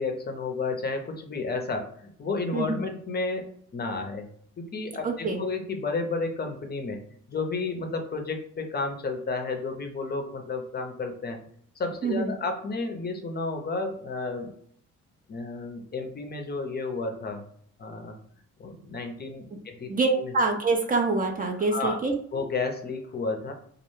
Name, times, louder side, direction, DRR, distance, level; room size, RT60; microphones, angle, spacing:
voice 1, 0.0-4.3 4.6-7.0 7.3-11.4 11.8-14.5 15.3-17.4 17.8-18.2 18.6-19.9 20.2-20.3 21.7-22.0 22.3-23.5, left 3 dB, 35° left, 4 dB, 0.5 m, -32 dB
voice 2, 2.5-2.8 5.0-5.4 12.0-12.3 19.5-19.6 19.9-22.1, right 3 dB, 30° right, 3 dB, 0.4 m, -25 dB
2.3 x 2.1 x 3.0 m, 0.63 s
cardioid pair, 90°, 30 cm